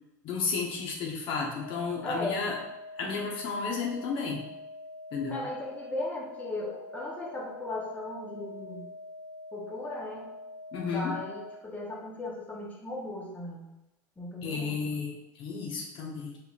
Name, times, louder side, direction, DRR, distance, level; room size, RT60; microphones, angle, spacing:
voice 1, 0.2-2.6 3.0-4.4 5.1-5.4 10.7-11.2 14.4-16.4, left 5 dB, 55° left, -1 dB, 1.0 m, -32 dB
sound 1, 1.6-11.6, left 2 dB, 80° left, 1.5 m, -45 dB
voice 2, 2.0-2.5 5.3-8.9 9.5-10.3 10.8-13.7 14.2-14.8, left 2 dB, 15° left, -3 dB, 0.9 m, -37 dB
4.7 x 3.3 x 2.4 m, 0.97 s
hypercardioid pair, 95°, 10 cm